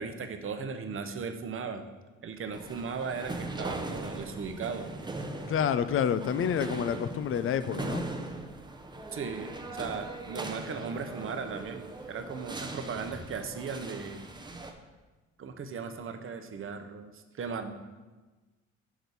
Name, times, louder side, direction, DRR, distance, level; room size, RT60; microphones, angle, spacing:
voice 1, 0.0-1.9 2.2-4.9 9.1-14.3 15.4-17.7, right 5 dB, 45° right, 7 dB, 0.8 m, -37 dB
sound 1, 2.5-14.7, right 2 dB, 15° right, 0.7 m, -40 dB
voice 2, 5.5-8.0, left 8 dB, 45° left, 13 dB, 0.5 m, -28 dB
6.7 x 6.1 x 4.1 m, 1.2 s
cardioid pair, 90°, 30 cm